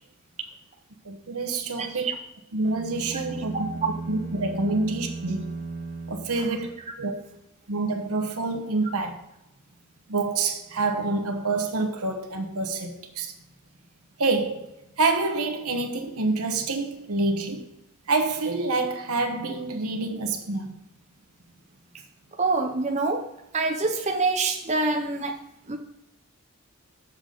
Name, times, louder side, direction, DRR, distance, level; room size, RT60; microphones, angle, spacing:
voice 1, 1.0-2.1 2.5-3.8 4.1-5.5 6.1-6.7 7.0-7.1 7.7-9.2 10.1-13.3 14.2-14.7 15.0-17.6 18.1-20.7, right 3 dB, 85° right, 1.1 m, -27 dB
sound 1, 2.6-7.0, right 3 dB, 55° right, 0.9 m, -36 dB
voice 2, 22.4-23.2 23.5-25.3 25.7-25.8, right 3 dB, 30° right, 0.6 m, -25 dB
7.0 x 7.0 x 3.9 m
head